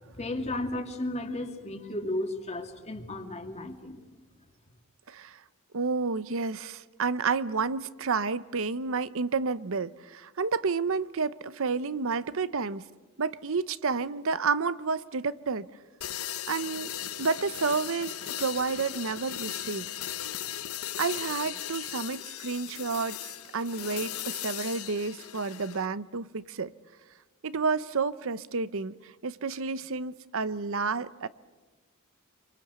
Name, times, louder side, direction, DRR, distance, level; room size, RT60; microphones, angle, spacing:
voice 1, 0.1-4.0, left 1 dB, 30° left, 5 dB, 2.4 m, -34 dB
voice 2, 5.1-5.4 5.7-12.8 13.2-15.7 16.5-16.9 17.2-18.1 18.4-19.9 21.0-23.2 23.5-26.7 27.4-31.3, right 4 dB, 65° right, 16 dB, 0.8 m, -30 dB
sound 1, 16.0-25.9, left 11 dB, 85° left, 1.0 m, -37 dB
27.5 x 24.5 x 8.2 m, 1.2 s
head